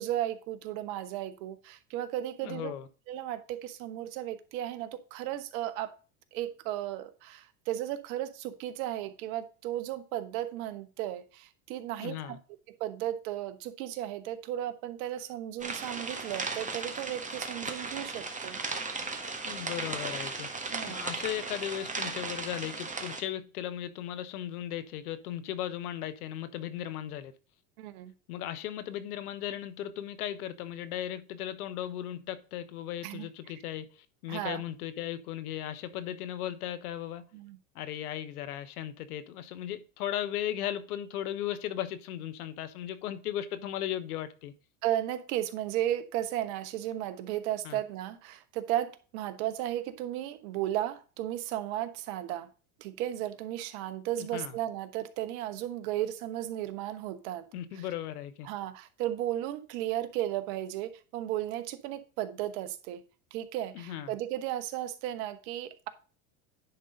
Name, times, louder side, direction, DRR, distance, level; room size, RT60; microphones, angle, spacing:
voice 1, 0.0-2.7 3.1-5.9 6.3-12.4 12.7-18.6 20.7-21.0 27.8-28.1 33.0-33.3 34.3-34.6 37.3-37.6 44.8-52.5 52.8-57.5 57.7-57.8 58.4-63.0 63.3-65.9, right 12 dB, 70° right, 1.1 m, -35 dB
voice 2, 2.4-2.9 12.0-12.4 19.4-20.5 20.9-27.3 28.3-37.2 37.7-44.5 47.6-47.8 54.2-54.6 57.5-58.5 63.7-64.2, left 11 dB, 80° left, 1.1 m, -36 dB
sound 1, 15.6-23.2, right 3 dB, 15° right, 1.5 m, -36 dB
10.0 x 3.9 x 5.1 m
hypercardioid pair, 95°, 44 cm